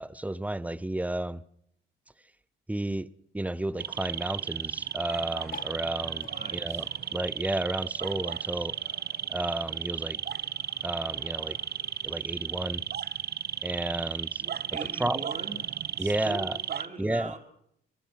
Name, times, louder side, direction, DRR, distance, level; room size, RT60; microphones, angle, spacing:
voice 1, 0.0-1.4 2.7-3.1 3.3-8.8 9.3-10.2 10.8-11.6 12.0-12.8 13.6-14.4 15.0-15.3 16.0-16.6 17.0-17.3, right 1 dB, 5° right, 0.9 m, -32 dB
sound 1, 3.8-16.9, right 9 dB, 55° right, 1.0 m, -34 dB
sound 2, 5.4-12.1, left 6 dB, 75° left, 5.1 m, -56 dB
sound 3, 5.4-8.2 8.5-10.1 10.6-10.7 10.8-10.9 11.1-11.5 12.3-12.4, left 6 dB, 45° left, 1.8 m, -50 dB
voice 2, 6.3-6.9 14.4-15.7 16.0-17.4, right 3 dB, 35° right, 4.7 m, -41 dB
23.5 x 19.5 x 5.9 m
cardioid pair, 90°, 20 cm